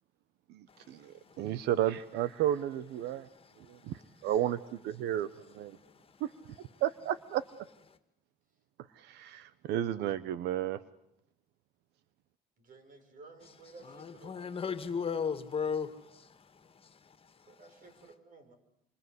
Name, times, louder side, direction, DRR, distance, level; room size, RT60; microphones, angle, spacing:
voice 1, 0.5-3.3 3.6-5.3 5.5-5.8 6.2-6.3 6.8-7.4 9.0-10.8, right 12 dB, 85° right, 1.1 m, -33 dB
voice 2, 12.6-15.3 17.5-18.5, right 3 dB, 55° right, 6.8 m, -55 dB
voice 3, 14.0-16.3, left 6 dB, 35° left, 2.4 m, -34 dB
28.5 x 25.5 x 8.1 m
cardioid pair, 110°, 17 cm